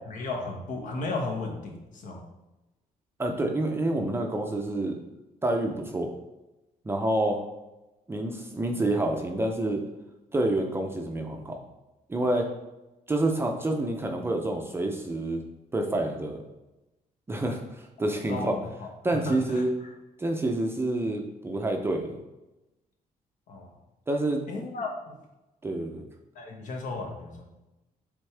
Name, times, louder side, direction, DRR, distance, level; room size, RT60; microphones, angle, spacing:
voice 1, 0.1-2.2 18.0-18.9 19.2-19.6 23.5-23.8 24.5-25.2 26.3-27.4, left 3 dB, 60° left, 1 dB, 1.2 m, -34 dB
voice 2, 3.2-5.0 5.4-6.1 6.9-7.4 8.1-9.8 10.3-11.6 12.1-12.5 13.1-15.4 15.7-16.4 17.3-18.6 19.0-19.7 20.2-22.2 24.1-24.4 25.6-26.0, right 1 dB, 15° right, 3 dB, 0.6 m, -28 dB
7.7 x 3.6 x 3.3 m, 1.0 s
cardioid pair, 145°, 15 cm